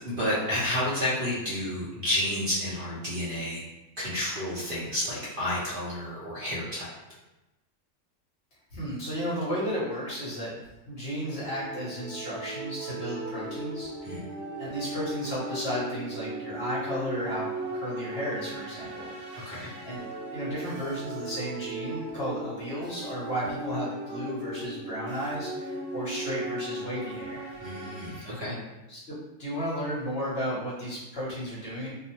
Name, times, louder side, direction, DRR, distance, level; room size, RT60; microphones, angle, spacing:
voice 1, 0.0-3.6 4.0-6.9 14.0-14.2 19.3-19.7 27.6-28.6, left 1 dB, 50° right, -8 dB, 0.8 m, -30 dB
voice 2, 8.7-10.5 10.9-14.2 14.6-19.5 19.8-27.5 28.9-31.9, equal, 55° left, -7 dB, 1.0 m, -34 dB
sound 1, 11.2-28.5, right 1 dB, 80° right, 1.0 m, -37 dB
2.7 x 2.0 x 2.8 m, 0.98 s
omnidirectional pair, 1.3 m